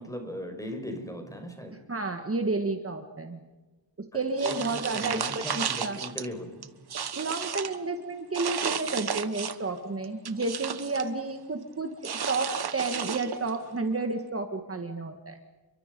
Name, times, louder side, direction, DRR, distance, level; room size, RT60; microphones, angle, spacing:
voice 1, 0.0-1.7 4.1-6.7, equal, 5° left, 5 dB, 5.3 m, -38 dB
voice 2, 1.9-3.4 4.1-6.0 7.2-15.4, right 3 dB, 30° right, 5 dB, 1.7 m, -31 dB
sound 1, 4.4-6.3 6.6-7.8 8.3-9.7 10.0-11.1 12.0-13.6, right 7 dB, 55° right, 1.3 m, -33 dB
30.0 x 23.5 x 5.4 m, 1.2 s
wide cardioid pair, 145°, 46 cm